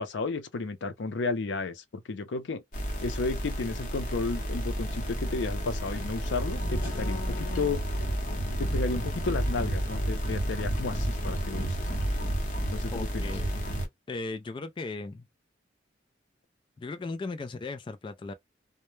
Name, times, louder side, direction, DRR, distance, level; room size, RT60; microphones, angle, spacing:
voice 1, 0.0-2.6 3.0-7.8 8.4-11.9 12.7-13.3, left 3 dB, 85° left, 0.5 m, -33 dB
sound 1, 2.7-13.9, equal, 50° left, 0.8 m, -31 dB
voice 2, 12.9-13.6 14.1-15.3 16.8-18.3, left 3 dB, 25° left, 0.3 m, -37 dB
2.1 x 2.1 x 3.0 m
head